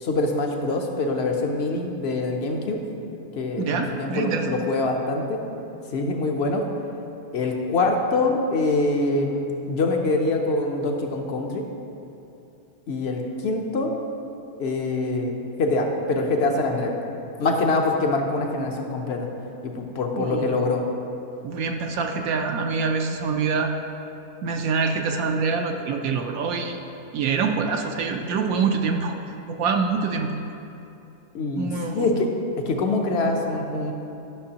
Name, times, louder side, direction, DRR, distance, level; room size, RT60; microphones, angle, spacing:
voice 1, 0.0-2.8 3.3-5.4 5.9-6.7 7.3-11.6 12.9-14.0 14.6-17.0 17.4-19.3 19.6-20.8 31.3-32.3 32.7-33.9, left 2 dB, 60° left, 2 dB, 0.7 m, -24 dB
voice 2, 3.6-4.7 20.1-20.6 21.4-23.7 24.4-26.8 27.1-29.2 29.5-30.3 31.6-32.1, right 5 dB, 70° right, 4 dB, 1.0 m, -25 dB
11.5 x 6.0 x 2.8 m, 2.8 s
omnidirectional pair, 1.7 m